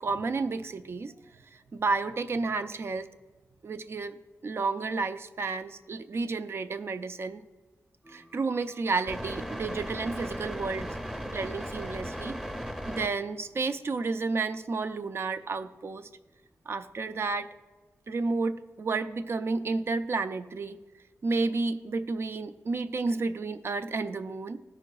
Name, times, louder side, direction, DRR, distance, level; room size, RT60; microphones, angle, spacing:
voice 1, 0.0-3.1 3.6-4.2 4.4-7.4 8.1-11.0 11.3-12.4 12.9-16.1 16.7-17.5 18.1-20.8 21.2-24.6, right 3 dB, 45° right, 9 dB, 0.4 m, -31 dB
sound 1, 8.0-13.1, equal, 10° right, 0.8 m, -37 dB
14.0 x 5.6 x 2.3 m, 1.3 s
wide cardioid pair, 145°, 6 cm